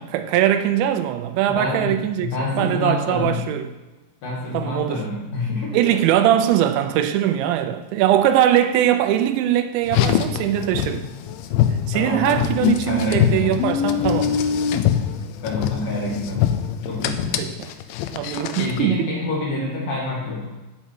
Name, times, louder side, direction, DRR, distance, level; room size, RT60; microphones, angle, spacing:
voice 1, 0.0-2.3 2.6-3.7 4.5-5.0 5.7-11.1 11.9-14.4 17.4-17.5 18.1-19.1, right 11 dB, 85° right, 2.9 m, -21 dB
voice 2, 1.5-3.4 4.2-6.2 11.8-12.5 12.9-13.6 15.4-16.5 16.8-17.5 18.6-20.5, left 2 dB, 55° left, 3.2 m, -27 dB
Car, 9.8-18.8, left 9 dB, 90° left, 3.0 m, -23 dB
16.0 x 5.6 x 4.6 m
omnidirectional pair, 5.2 m